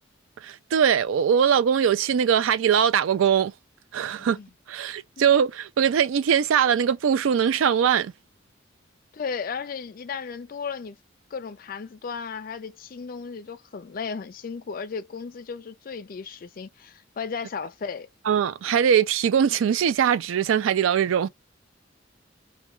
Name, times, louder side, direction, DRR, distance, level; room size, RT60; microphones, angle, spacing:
voice 1, 0.4-3.5 3.9-4.4 4.7-8.1 18.3-21.3, right 8 dB, 85° right, 0.3 m, -21 dB
voice 2, 4.2-4.5 5.2-5.3 9.1-11.0 11.3-18.1, left 5 dB, 45° left, 0.4 m, -35 dB
2.2 x 2.2 x 3.0 m
head